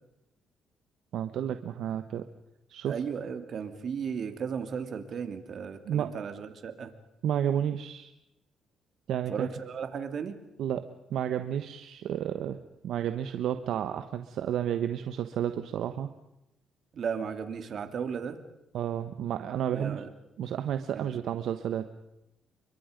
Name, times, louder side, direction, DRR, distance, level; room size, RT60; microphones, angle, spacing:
voice 1, 1.1-2.2 2.7-3.0 5.9-6.1 7.2-8.1 9.1-9.5 10.6-10.8 11.1-12.6 12.8-16.1 18.7-20.0 20.4-21.9, right 10 dB, 75° right, 9 dB, 1.1 m, -31 dB
voice 2, 2.9-6.9 9.3-10.4 16.9-18.4 19.7-20.1 20.9-21.1, right 6 dB, 55° right, 8 dB, 2.9 m, -35 dB
30.0 x 23.5 x 5.2 m, 0.87 s
cardioid pair, 90°, 0 cm